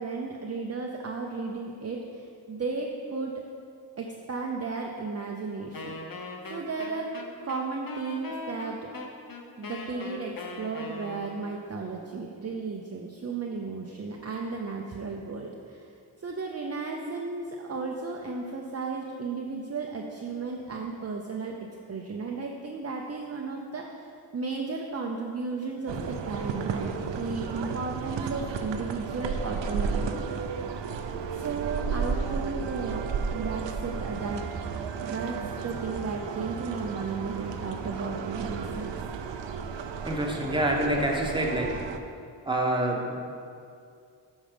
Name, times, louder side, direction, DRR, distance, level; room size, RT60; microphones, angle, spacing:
voice 1, 0.0-3.3 4.0-7.1 7.4-8.9 9.6-15.9 16.2-21.5 21.9-30.5 31.3-34.4 35.0-35.4 35.6-38.9, right 4 dB, 35° right, 0 dB, 0.7 m, -34 dB
Wind instrument woodwind instrument, 5.7-11.6, left 2 dB, 50° left, 1.0 m, -40 dB
sound 1, 25.9-42.0, right 6 dB, 80° right, 0.7 m, -33 dB
voice 2, 40.0-41.7 42.4-43.1, right 1 dB, 10° right, -1 dB, 1.3 m, -26 dB
8.5 x 5.3 x 5.2 m, 2.4 s
cardioid pair, 75°, 43 cm